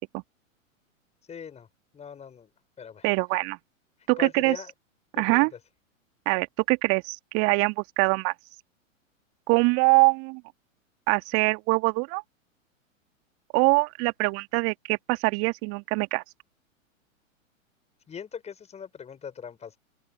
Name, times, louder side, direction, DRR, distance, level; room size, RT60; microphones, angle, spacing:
voice 1, 1.3-1.7 1.9-2.5 2.8-3.1 4.2-4.7 5.1-5.5 18.1-19.8, left 7 dB, 15° left, 5.7 m, -40 dB
voice 2, 3.0-3.6 4.1-4.6 5.2-5.5 6.3-8.3 9.5-10.4 11.1-12.2 13.5-16.2, right 31 dB, 35° right, 2.0 m, -23 dB
figure-of-eight pair, 105°, 40 cm